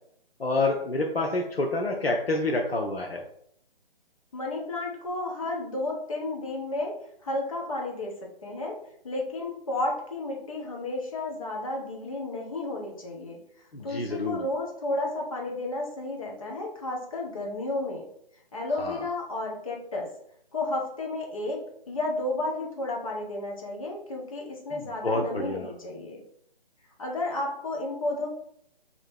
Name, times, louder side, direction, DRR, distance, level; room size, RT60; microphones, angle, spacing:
voice 1, 0.4-3.2 13.7-14.4 18.8-19.1 24.7-25.7, left 2 dB, 85° left, 1 dB, 0.7 m, -28 dB
voice 2, 4.3-6.9 7.2-8.1 8.4-8.8 9.0-13.4 13.8-18.1 18.5-20.1 20.5-26.2 27.0-28.3, left 2 dB, 35° left, 0 dB, 0.9 m, -32 dB
2.9 x 2.8 x 4.4 m, 0.70 s
figure-of-eight pair, 145°, 29 cm